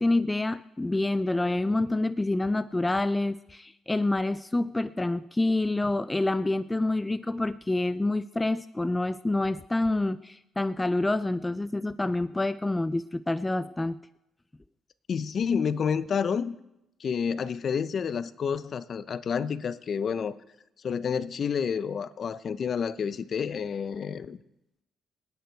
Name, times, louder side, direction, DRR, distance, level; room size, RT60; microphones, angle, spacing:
voice 1, 0.0-14.0, left 2 dB, 15° left, 13 dB, 0.5 m, -27 dB
voice 2, 15.1-16.6 17.0-20.4 20.8-24.4, left 6 dB, 55° left, 14 dB, 0.7 m, -29 dB
26.0 x 9.4 x 4.6 m, 0.90 s
cardioid pair, 90°, 0 cm